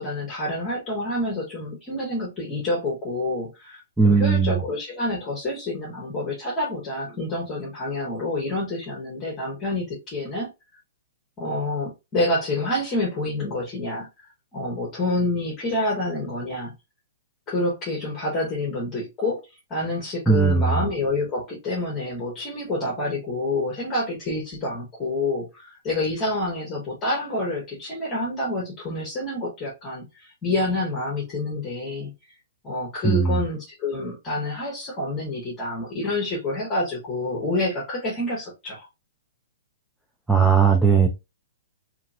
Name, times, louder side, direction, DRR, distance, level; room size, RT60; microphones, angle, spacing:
voice 1, 0.0-10.5 11.4-14.1 14.5-16.7 17.5-19.4 19.7-32.1 32.6-38.9, left 2 dB, 20° left, 1.2 m, -28 dB
voice 2, 4.0-4.6 20.3-20.8 33.0-33.3 40.3-41.1, right 5 dB, 5° right, 0.4 m, -18 dB
2.8 x 2.8 x 2.7 m
hypercardioid pair, 155°, 0 cm